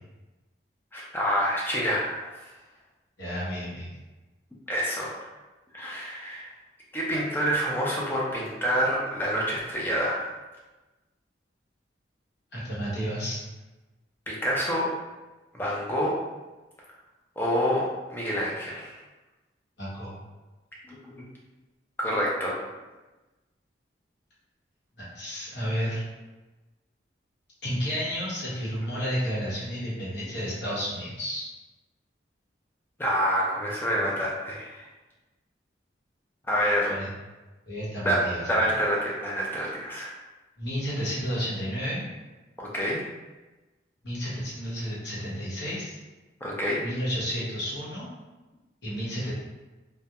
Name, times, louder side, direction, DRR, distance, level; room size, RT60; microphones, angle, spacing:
voice 1, 0.9-2.5 4.7-5.3 5.7-6.5 6.9-10.2 14.3-14.9 15.5-16.2 17.4-19.0 20.9-21.2 22.0-22.6 28.9-29.0 33.0-34.9 36.5-36.9 38.0-38.2 38.5-40.1 42.6-43.0 46.4-46.8, equal, 10° left, -5 dB, 0.4 m, -27 dB
voice 2, 3.2-3.9 12.5-13.4 19.8-20.1 25.0-26.0 27.6-31.5 36.9-37.1 37.7-38.7 40.6-42.1 44.0-46.0 46.8-48.1 48.8-49.3, equal, 65° left, -8 dB, 0.9 m, -31 dB
2.3 x 2.1 x 2.8 m, 1.1 s
head